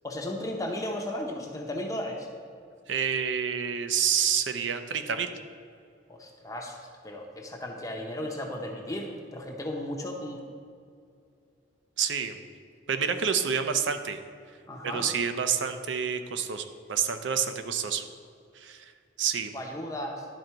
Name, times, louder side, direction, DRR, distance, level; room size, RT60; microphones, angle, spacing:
voice 1, 0.0-2.3 6.1-6.8 7.0-10.4 14.7-15.1 19.5-20.3, left 1 dB, 20° left, 1 dB, 0.6 m, -35 dB
voice 2, 2.9-5.3 12.0-12.4 12.9-14.2 14.8-18.0 18.6-18.9 19.2-19.5, right 7 dB, 85° right, 8 dB, 0.5 m, -28 dB
11.0 x 3.8 x 4.5 m, 2.3 s
head